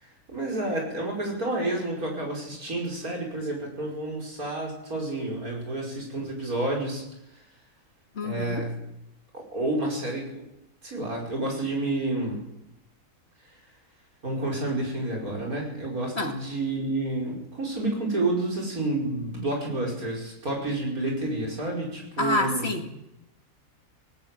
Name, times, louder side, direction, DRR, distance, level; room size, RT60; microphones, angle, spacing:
voice 1, 0.0-7.0 8.2-8.7 9.3-10.4 10.8-12.5 14.2-22.7, right 2 dB, 65° right, -1 dB, 6.0 m, -30 dB
voice 2, 8.2-8.6 16.2-16.3 22.2-22.9, left 2 dB, 40° left, 5 dB, 2.2 m, -27 dB
20.0 x 17.5 x 7.6 m, 0.86 s
omnidirectional pair, 1.7 m